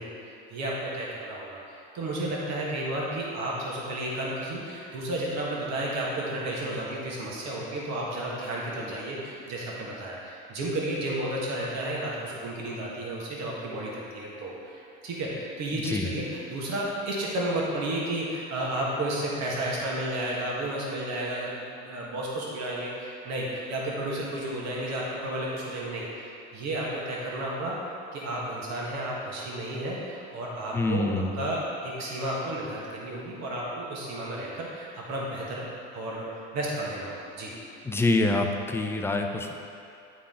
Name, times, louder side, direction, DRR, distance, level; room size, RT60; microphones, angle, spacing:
voice 1, 0.0-27.8 28.1-35.6 35.9-37.5, right 1 dB, 55° right, -4 dB, 1.5 m, -32 dB
voice 2, 15.7-16.1 30.7-31.4 37.8-39.5, left 2 dB, 10° left, 3 dB, 0.3 m, -26 dB
9.7 x 3.9 x 3.7 m, 2.6 s
supercardioid pair, 120°, 33 cm